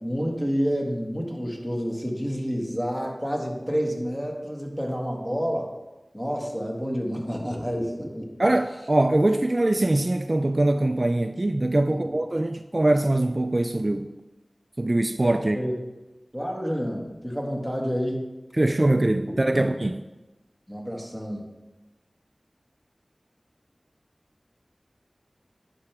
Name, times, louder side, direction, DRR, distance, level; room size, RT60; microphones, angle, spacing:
voice 1, 0.0-5.7 6.1-8.3 11.9-12.1 15.3-15.7 16.3-18.2 19.5-19.6 20.7-21.4, equal, 10° left, 0 dB, 1.8 m, -29 dB
voice 2, 8.4-14.1 14.8-15.6 18.5-20.0, right 1 dB, 40° right, 8 dB, 0.3 m, -22 dB
9.7 x 5.9 x 3.5 m, 1.1 s
wide cardioid pair, 45°, 0 cm